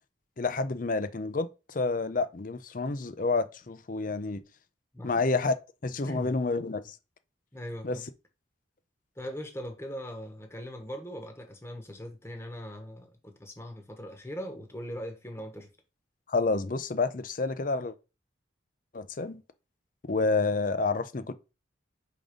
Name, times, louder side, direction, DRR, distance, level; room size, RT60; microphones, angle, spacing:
voice 1, 0.4-4.4 5.0-5.6 5.8-7.0 7.8-8.0 16.3-17.9 18.9-19.4 20.1-21.3, left 3 dB, 45° left, 0.6 m, -29 dB
voice 2, 7.5-8.1 9.2-15.7, equal, 15° left, 1.1 m, -40 dB
5.2 x 3.7 x 5.1 m
head